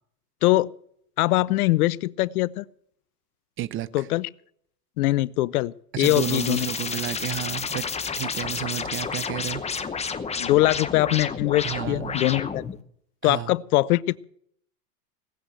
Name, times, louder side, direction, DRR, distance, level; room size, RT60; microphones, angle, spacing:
voice 1, 0.4-0.7 1.2-2.6 3.9-4.3 5.0-6.7 10.4-12.6 13.2-14.2, left 17 dB, 65° left, 0.6 m, -22 dB
voice 2, 3.6-4.1 5.9-7.9 8.2-9.6 11.6-12.2 13.2-13.5, right 14 dB, 25° right, 0.6 m, -31 dB
sound 1, 6.0-12.8, left 5 dB, 15° left, 0.9 m, -31 dB
19.0 x 7.9 x 7.8 m
hypercardioid pair, 100°, 48 cm